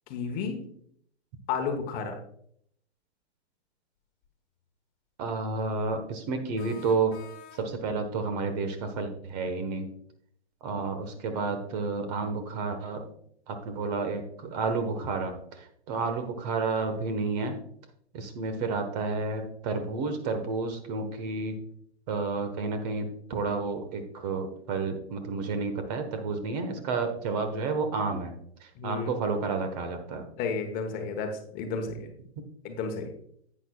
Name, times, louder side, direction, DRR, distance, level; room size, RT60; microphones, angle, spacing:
voice 1, 0.1-0.6 1.5-2.2 28.8-29.1 30.4-32.1 32.6-33.1, left 5 dB, 25° left, 4 dB, 1.1 m, -32 dB
sound 1, 4.2-4.3 6.6-8.0, left 8 dB, 45° left, 1.5 m, -50 dB
voice 2, 5.2-7.1 7.5-9.9 10.6-13.1 13.5-17.6 18.1-21.6 22.1-30.3, right 4 dB, 40° right, 7 dB, 1.3 m, -31 dB
10.5 x 8.6 x 2.3 m, 0.67 s
hypercardioid pair, 140°, 33 cm